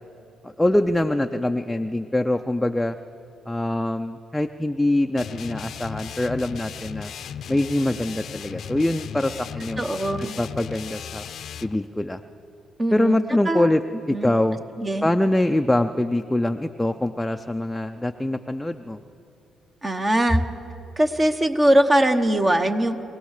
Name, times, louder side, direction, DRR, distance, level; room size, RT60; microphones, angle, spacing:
voice 1, 0.4-3.0 3.5-7.1 7.5-9.9 10.2-11.2 11.6-12.2 12.9-13.8 14.1-14.6 15.0-19.0, left 1 dB, 5° left, 6 dB, 0.5 m, -24 dB
sound 1, 5.2-11.8, left 8 dB, 65° left, 0.6 m, -36 dB
voice 2, 9.8-10.3 12.8-13.2 13.5-13.7 14.1-14.3 14.8-15.1 19.8-20.4 21.0-23.0, right 1 dB, 25° right, 7 dB, 1.1 m, -21 dB
23.5 x 17.0 x 6.6 m, 2.6 s
cardioid pair, 90°, 0 cm